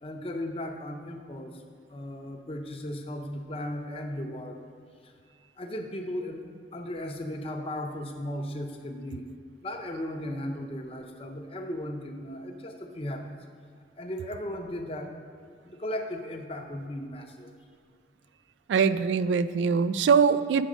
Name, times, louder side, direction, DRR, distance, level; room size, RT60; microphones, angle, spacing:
voice 1, 0.0-1.6 1.9-4.6 5.0-5.1 5.6-6.4 6.7-9.3 9.6-13.3 14.0-15.1 15.6-17.5, left 1 dB, 30° left, 4 dB, 0.7 m, -36 dB
voice 2, 18.7-20.6, right 6 dB, 80° right, 13 dB, 0.3 m, -22 dB
8.5 x 6.2 x 5.0 m, 2.1 s
head